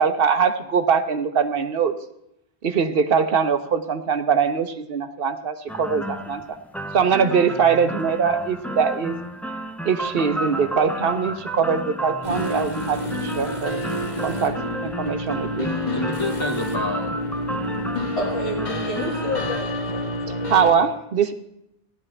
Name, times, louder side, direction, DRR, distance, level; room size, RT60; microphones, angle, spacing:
voice 1, 0.0-1.9 2.6-6.6 6.9-9.2 9.8-13.8 14.2-14.6 14.8-15.7 20.5-21.3, right 6 dB, 65° right, 9 dB, 1.0 m, -22 dB
sound 1, 5.7-19.6, equal, ahead, 0.4 m, -32 dB
sound 2, 12.2-20.7, left 1 dB, 45° left, 1.9 m, -29 dB
voice 2, 15.9-18.1, left 2 dB, 25° left, 4 dB, 1.0 m, -32 dB
voice 3, 18.2-20.9, left 1 dB, 75° left, -6 dB, 2.2 m, -31 dB
15.5 x 11.0 x 3.3 m, 0.79 s
omnidirectional pair, 1.1 m